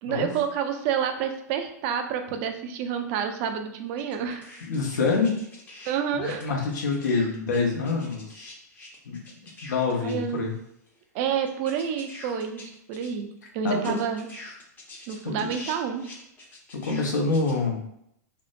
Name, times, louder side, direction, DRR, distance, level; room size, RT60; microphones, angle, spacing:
voice 1, 0.0-4.5 5.9-6.5 9.9-10.5 11.1-13.3 13.5-14.3 15.1-16.1, right 8 dB, 45° right, 6 dB, 0.4 m, -29 dB
sound 1, 4.0-5.9 6.2-10.6 10.9-11.0 11.5-13.1 13.4-13.5 13.7-17.5, left 2 dB, 20° left, 0.6 m, -45 dB
voice 2, 4.7-5.3 6.2-8.5 9.1-9.2 9.6-10.5 13.6-13.9 15.2-15.5 16.8-17.8, left 4 dB, 80° left, 0 dB, 0.7 m, -26 dB
2.6 x 2.1 x 2.5 m, 0.74 s
hypercardioid pair, 120°, 10 cm